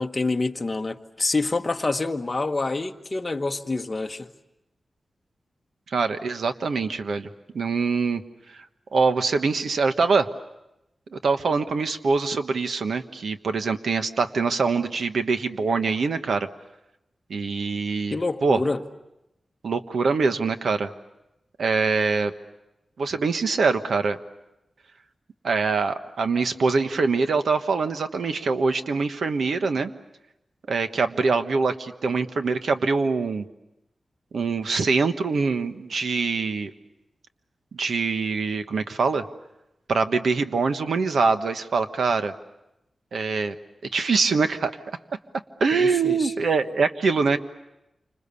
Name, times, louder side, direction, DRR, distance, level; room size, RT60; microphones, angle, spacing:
voice 1, 0.0-4.3 18.1-18.8 45.7-46.3, left 3 dB, 30° left, 1.3 m, -27 dB
voice 2, 5.9-7.3 7.5-8.2 8.9-10.3 11.1-16.5 17.3-18.6 19.6-20.9 21.6-22.3 23.0-24.2 25.4-29.9 30.7-33.4 34.3-36.7 37.7-39.2 39.9-42.3 43.1-43.5 43.9-44.8 45.6-47.4, right 4 dB, 80° right, 1.3 m, -24 dB
29.0 x 26.0 x 7.0 m
wide cardioid pair, 125°, 0 cm